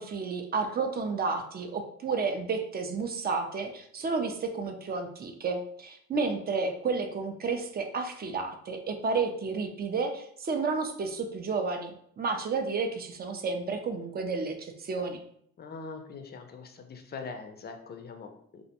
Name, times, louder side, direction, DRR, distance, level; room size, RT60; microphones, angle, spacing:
voice 1, 0.0-15.2, right 4 dB, 30° right, 6 dB, 0.4 m, -31 dB
voice 2, 15.6-18.6, left 4 dB, 35° left, 5 dB, 0.4 m, -42 dB
2.4 x 2.1 x 2.8 m, 0.66 s
cardioid pair, 90°, 30 cm